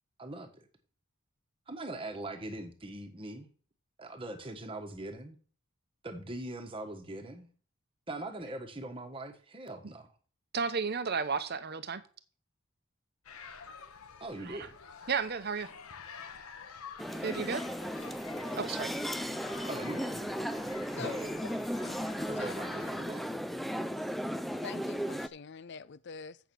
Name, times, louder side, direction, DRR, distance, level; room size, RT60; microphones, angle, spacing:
voice 1, 0.2-0.7 1.7-3.5 4.0-5.4 6.0-7.5 8.1-10.1 14.2-14.7 19.7-20.3 21.0-21.3 22.3-23.3, right 1 dB, 25° right, 1.3 m, -41 dB
voice 2, 10.5-12.0 14.4-14.7 15.1-15.7 17.2-17.6 18.5-18.9, right 5 dB, 50° right, 0.8 m, -33 dB
sound 1, 13.2-23.0, left 5 dB, 85° left, 1.2 m, -48 dB
sound 2, 17.0-25.3, equal, ahead, 0.4 m, -36 dB
voice 3, 24.6-26.4, left 6 dB, 55° left, 0.5 m, -44 dB
7.9 x 7.0 x 6.1 m
head